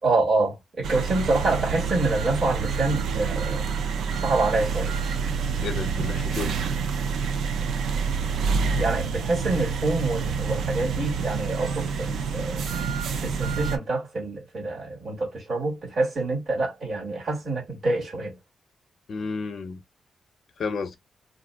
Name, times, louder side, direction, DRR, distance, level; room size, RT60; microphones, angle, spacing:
voice 1, 0.0-3.7 4.1-4.9 8.7-12.6 13.2-18.4, right 2 dB, 40° right, 1.5 m, -26 dB
sound 1, 0.8-13.8, right 5 dB, 90° right, 0.5 m, -27 dB
voice 2, 5.6-6.6 19.1-19.8 20.6-21.0, left 4 dB, 55° left, 0.7 m, -31 dB
2.5 x 2.0 x 3.5 m
wide cardioid pair, 150°, 0 cm